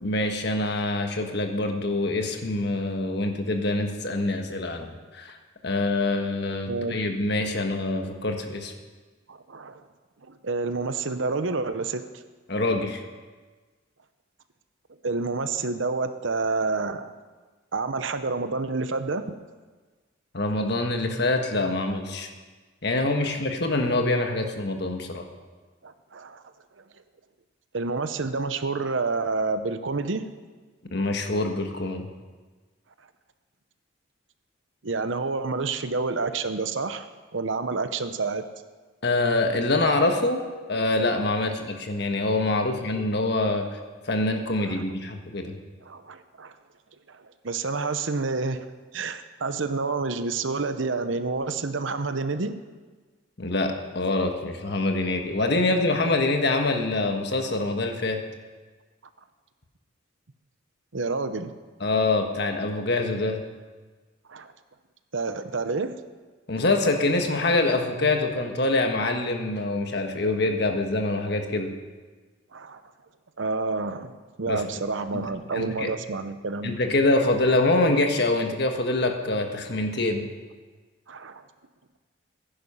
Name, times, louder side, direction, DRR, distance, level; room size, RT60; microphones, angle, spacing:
voice 1, 0.0-5.3 5.6-8.7 12.5-13.0 20.3-22.3 22.8-25.2 30.9-32.1 39.0-43.8 44.0-45.6 53.4-58.2 61.8-63.4 66.5-71.7 74.5-74.6 75.1-75.3 75.5-75.9 76.6-80.3, left 2 dB, 55° left, 4 dB, 1.5 m, -25 dB
voice 2, 9.3-9.8 10.2-12.0 15.0-17.1 17.7-19.3 25.8-26.4 26.8-26.9 27.7-30.3 34.8-37.1 37.3-38.5 44.6-44.8 45.8-46.5 47.1-48.6 48.9-52.6 60.9-61.5 64.3-64.5 65.1-66.0 72.5-72.8 73.4-74.1 74.4-76.8 81.1-81.4, right 3 dB, 70° right, 10 dB, 0.8 m, -29 dB
15.5 x 10.5 x 5.7 m, 1.4 s
head